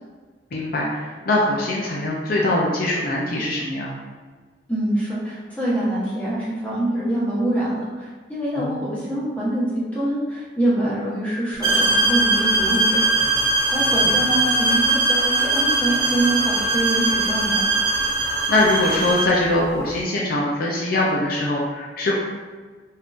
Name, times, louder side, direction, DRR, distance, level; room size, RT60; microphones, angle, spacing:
voice 1, 0.5-3.9 8.5-8.8 18.5-22.1, left 1 dB, 55° left, -3 dB, 0.5 m, -22 dB
voice 2, 4.7-13.0 13.7-17.6, right 1 dB, 10° left, -9 dB, 1.0 m, -25 dB
sound 1, 11.6-19.4, right 2 dB, 20° right, 1.0 m, -20 dB
3.5 x 2.7 x 2.4 m, 1.4 s
head